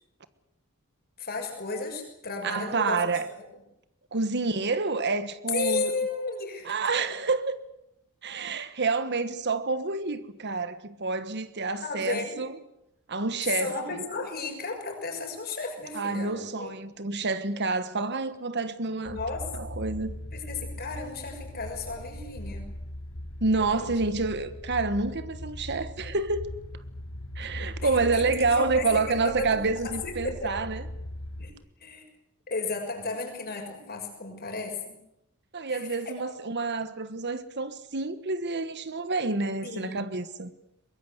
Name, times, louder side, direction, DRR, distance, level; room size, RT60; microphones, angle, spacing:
voice 1, 1.2-3.4 5.5-6.8 11.8-12.4 13.5-16.8 19.0-19.5 20.3-22.7 23.5-23.9 27.8-29.6 29.8-30.5 31.4-31.5 31.8-32.0 32.5-35.0 35.7-36.1 39.6-40.0, left 3 dB, 45° left, 6.2 m, -34 dB
voice 2, 2.4-3.2 4.1-6.0 6.6-7.6 8.2-12.5 13.1-13.7 15.9-19.2 19.5-20.1 23.4-26.5 27.4-30.8 35.5-40.5, right 3 dB, 50° right, 1.4 m, -28 dB
sound 1, 19.0-31.5, left 1 dB, 90° left, 3.6 m, -39 dB
23.0 x 22.0 x 8.1 m
head